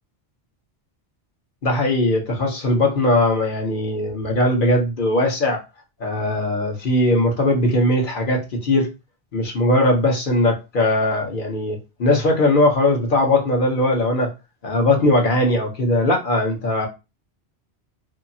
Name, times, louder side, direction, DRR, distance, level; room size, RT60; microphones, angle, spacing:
voice 1, 1.6-5.6 6.0-8.9 9.3-14.3 14.6-16.9, left 1 dB, 55° left, 1.0 m, -19 dB
2.7 x 2.4 x 2.6 m
omnidirectional pair, 1.1 m